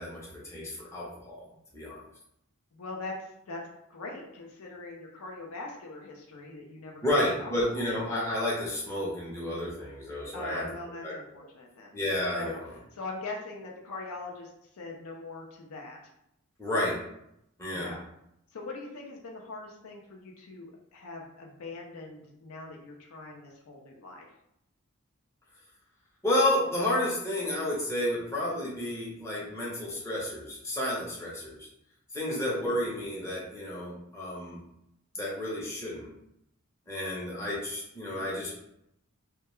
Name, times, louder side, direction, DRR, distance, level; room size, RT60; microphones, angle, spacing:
voice 1, 0.0-1.5 1.7-2.0 7.0-10.6 11.0-11.1 11.9-12.6 16.6-17.0 17.6-17.9 26.2-31.7 32.1-34.6 35.1-36.1 36.9-38.5, left 1 dB, 15° left, -6 dB, 0.6 m, -31 dB
voice 2, 2.7-3.6 3.9-7.9 10.3-12.0 12.3-12.6 12.9-16.0 17.7-18.0 18.5-24.3 32.3-32.8, left 3 dB, 70° left, 0 dB, 0.5 m, -42 dB
2.2 x 2.1 x 2.9 m, 0.79 s
head